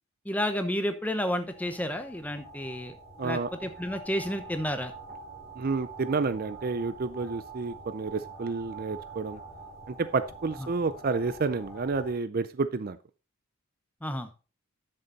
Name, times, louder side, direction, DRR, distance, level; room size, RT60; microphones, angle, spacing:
voice 1, 0.2-3.0 3.2-4.9 10.6-10.7 14.0-14.3, equal, 5° left, 8 dB, 0.9 m, -31 dB
sound 1, 1.0-12.1, right 3 dB, 15° right, 3.6 m, -46 dB
voice 2, 3.2-3.5 5.6-9.4 9.9-13.0, right 4 dB, 45° right, 13 dB, 0.5 m, -30 dB
10.5 x 6.8 x 4.0 m, 0.34 s
head